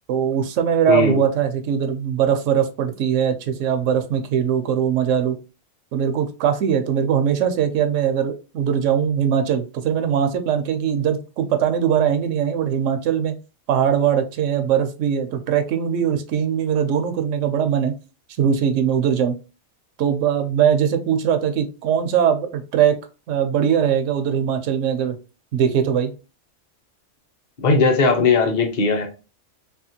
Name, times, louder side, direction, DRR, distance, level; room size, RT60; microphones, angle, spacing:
voice 1, 0.1-5.4 5.9-13.4 13.7-17.9 18.4-19.4 20.0-23.0 23.3-25.2 25.5-26.1, right 8 dB, 90° right, 1.0 m, -21 dB
voice 2, 0.9-1.2 27.6-29.1, left 4 dB, 40° left, 0.8 m, -18 dB
3.5 x 2.4 x 2.7 m
omnidirectional pair, 1.3 m